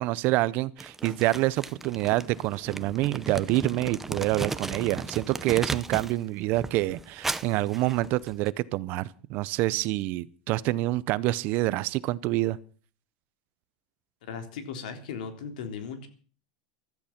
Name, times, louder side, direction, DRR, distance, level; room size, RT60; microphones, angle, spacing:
voice 1, 0.0-12.6, right 17 dB, 45° right, 0.7 m, -27 dB
Crumpling crinkling, 0.8-6.2 6.5-8.5, right 3 dB, 5° right, 0.6 m, -36 dB
voice 2, 14.2-16.1, left 6 dB, 85° left, 3.5 m, -37 dB
15.5 x 13.0 x 5.9 m
supercardioid pair, 165°, 4 cm